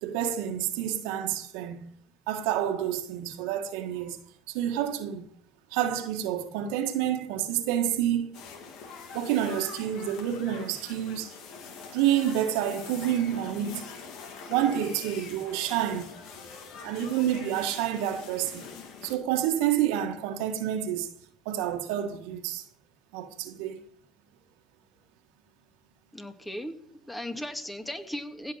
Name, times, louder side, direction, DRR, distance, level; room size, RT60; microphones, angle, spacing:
voice 1, 0.0-1.9 2.3-4.2 4.5-5.3 5.7-8.4 9.1-11.3 11.9-13.9 14.5-16.1 16.8-18.7 19.0-21.1 21.5-22.6 23.1-23.8, right 10 dB, 80° right, 1.6 m, -28 dB
sound 1, 8.3-19.2, left 5 dB, 70° left, 3.0 m, -44 dB
voice 2, 26.1-26.7 27.1-28.5, left 1 dB, 10° left, 2.3 m, -36 dB
16.0 x 6.5 x 9.5 m
supercardioid pair, 80°, 0 cm